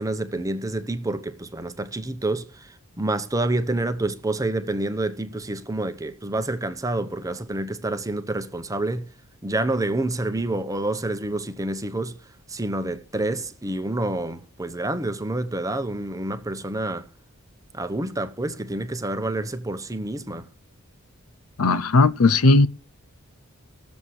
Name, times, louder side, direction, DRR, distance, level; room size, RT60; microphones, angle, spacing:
voice 1, 0.0-9.1 9.4-17.1 17.7-20.5, right 2 dB, 15° right, 0.8 m, -28 dB
voice 2, 21.6-22.7, left 3 dB, 75° left, 0.7 m, -17 dB
18.0 x 7.2 x 6.4 m
head